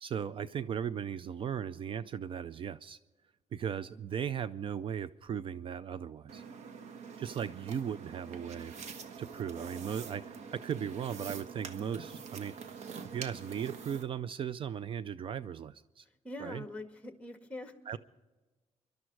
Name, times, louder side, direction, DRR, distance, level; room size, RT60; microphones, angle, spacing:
voice 1, 0.0-3.0 3.5-6.4 7.2-8.7 9.2-12.5 13.1-16.1 16.4-16.7 17.9-18.0, right 8 dB, 50° right, 16 dB, 0.4 m, -37 dB
sound 1, 6.3-14.0, right 6 dB, 85° right, 1.3 m, -45 dB
voice 2, 16.2-17.7, left 2 dB, 10° left, 7 dB, 1.7 m, -43 dB
25.0 x 12.0 x 4.7 m, 1.2 s
cardioid pair, 120°, 11 cm